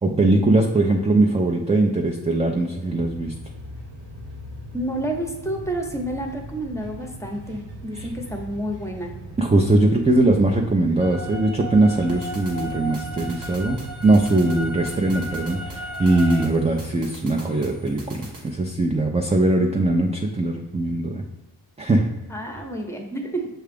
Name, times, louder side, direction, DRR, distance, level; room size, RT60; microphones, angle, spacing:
voice 1, 0.0-3.3 7.9-8.1 9.4-21.2 21.8-22.1, right 2 dB, 15° right, 1 dB, 0.4 m, -20 dB
sound 1, 2.8-17.0, right 1 dB, 85° right, 0.9 m, -39 dB
voice 2, 4.7-9.1 22.3-23.5, right 1 dB, 5° left, 2 dB, 0.8 m, -29 dB
sound 2, 11.0-16.5, equal, 40° right, 0.7 m, -35 dB
sound 3, 12.1-18.5, right 1 dB, 65° right, 1.2 m, -45 dB
6.5 x 2.4 x 3.4 m, 1.1 s
cardioid pair, 70°, 42 cm